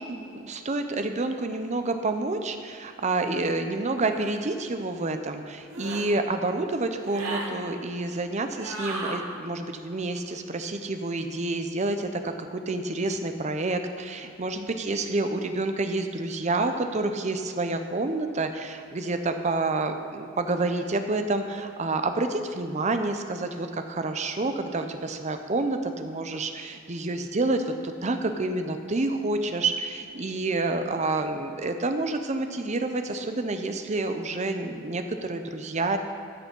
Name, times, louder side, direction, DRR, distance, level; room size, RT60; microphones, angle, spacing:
voice 1, 0.0-36.0, right 2 dB, 35° right, 7 dB, 0.7 m, -28 dB
sound 1, 4.1-4.4 5.7-6.1 7.0-7.5 8.6-9.2, right 2 dB, 85° right, 1.8 m, -35 dB
13.0 x 6.6 x 5.3 m, 2.6 s
head